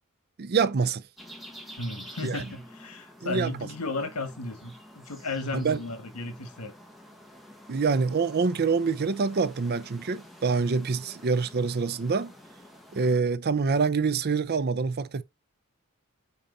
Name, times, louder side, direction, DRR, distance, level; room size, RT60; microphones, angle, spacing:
voice 1, 0.4-1.0 2.2-2.4 3.2-3.5 5.5-5.8 7.7-12.3 12.9-15.2, right 4 dB, 45° right, 0.5 m, -26 dB
sound 1, 1.2-13.2, equal, ahead, 1.2 m, -49 dB
voice 2, 1.8-6.7, left 2 dB, 85° left, 1.6 m, -34 dB
8.7 x 2.9 x 3.9 m
head